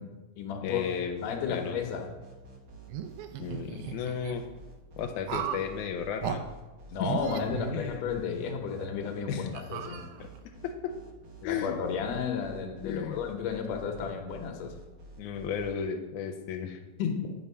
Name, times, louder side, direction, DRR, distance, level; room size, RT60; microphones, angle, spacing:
voice 1, 0.0-0.8 1.2-2.1 6.9-10.0 11.4-14.8 17.0-17.3, left 6 dB, 70° left, 4 dB, 2.0 m, -33 dB
voice 2, 0.6-1.2 1.5-1.8 3.4-4.4 5.0-6.5 7.0-7.1 7.4-8.0 9.3-9.6 10.2-10.9 11.4-11.8 12.8-13.2 15.2-16.8, left 7 dB, 85° left, 4 dB, 2.1 m, -34 dB
sound 1, 0.8-15.7, right 2 dB, 55° right, 1.7 m, -49 dB
sound 2, 2.9-4.3 5.3-5.7 6.2-6.4 7.0-8.3 8.7-8.9 9.5-10.5, right 9 dB, 85° right, 2.1 m, -36 dB
8.9 x 5.3 x 5.5 m, 1.1 s
omnidirectional pair, 3.4 m